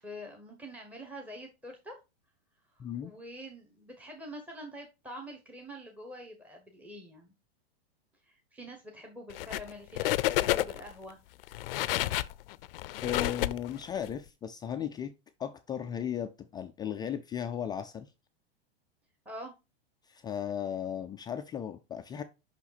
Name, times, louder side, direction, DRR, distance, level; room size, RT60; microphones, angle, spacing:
voice 1, 0.0-2.0 3.0-7.3 8.2-11.2 19.2-19.5, equal, 5° right, 1.1 m, -45 dB
voice 2, 2.8-3.1 13.0-15.1 15.4-18.1 20.1-22.2, left 9 dB, 15° left, 0.3 m, -36 dB
sound 1, 9.3-9.7 10.0-10.9 11.4-14.1, left 16 dB, 70° left, 0.5 m, -30 dB
5.7 x 5.7 x 4.1 m
hypercardioid pair, 125°, 30 cm